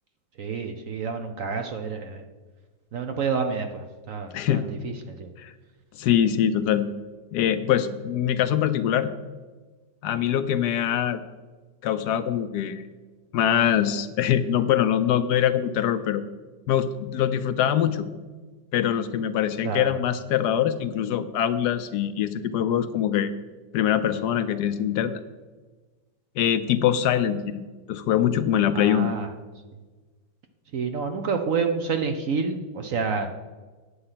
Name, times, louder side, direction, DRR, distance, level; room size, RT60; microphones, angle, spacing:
voice 1, 0.4-2.2 2.9-5.3 19.6-19.9 28.7-29.3 30.7-33.3, right 5 dB, 60° right, 6 dB, 0.9 m, -28 dB
voice 2, 4.3-4.6 5.4-5.5 6.0-6.9 7.3-9.1 10.0-11.2 11.8-12.9 13.3-16.2 16.7-18.1 18.7-23.3 23.7-25.2 26.4-27.6 27.9-29.1, left 10 dB, 75° left, 11 dB, 1.1 m, -23 dB
9.7 x 7.8 x 5.6 m, 1.3 s
omnidirectional pair, 1.9 m